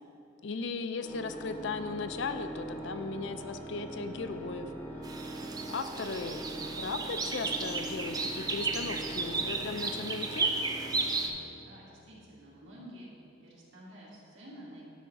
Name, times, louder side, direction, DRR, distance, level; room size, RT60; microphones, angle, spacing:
voice 1, 0.4-4.7 5.7-10.5, left 4 dB, 60° left, 9 dB, 0.4 m, -37 dB
Organ, 1.0-11.9, right 1 dB, 10° left, 0.7 m, -43 dB
sound 1, 4.5-4.7 5.4-5.6 6.3-6.5 7.3-7.4 8.2-8.3 9.1-9.2, equal, 45° left, 0.9 m, -52 dB
sound 2, 5.0-11.3, right 4 dB, 20° right, 0.3 m, -34 dB
voice 2, 11.6-13.1 13.4-14.8, right 1 dB, 75° right, -6 dB, 1.9 m, -50 dB
10.0 x 3.5 x 5.8 m, 2.8 s
head